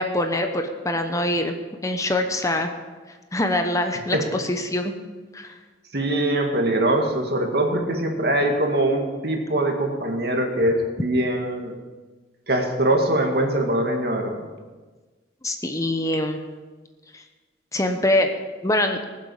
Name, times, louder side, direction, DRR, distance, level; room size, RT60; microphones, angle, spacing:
voice 1, 0.0-1.5 1.8-2.7 3.3-4.9 5.3-5.5 15.4-16.4 17.1-17.2 17.7-18.3 18.6-19.0, left 1 dB, 20° left, 6 dB, 0.9 m, -24 dB
voice 2, 5.9-11.7 12.5-14.4, right 1 dB, 60° right, 2 dB, 2.0 m, -22 dB
20.0 x 7.5 x 5.5 m, 1.3 s
head